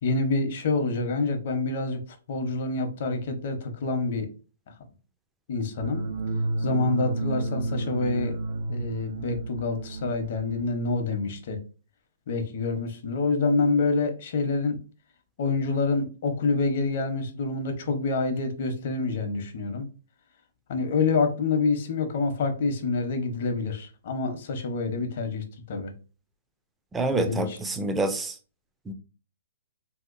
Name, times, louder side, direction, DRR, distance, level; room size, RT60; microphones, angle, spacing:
voice 1, 0.0-2.0 2.3-4.3 5.5-6.0 6.6-8.4 8.7-11.6 12.3-14.8 15.4-19.9 20.7-25.9 27.1-27.6, left 3 dB, 50° left, 0.7 m, -27 dB
sound 1, 5.8-10.9, right 3 dB, 75° right, 0.9 m, -31 dB
voice 2, 26.9-28.3 28.9-29.0, right 2 dB, 10° right, 0.3 m, -27 dB
3.3 x 2.8 x 2.5 m
hypercardioid pair, 160°, 0 cm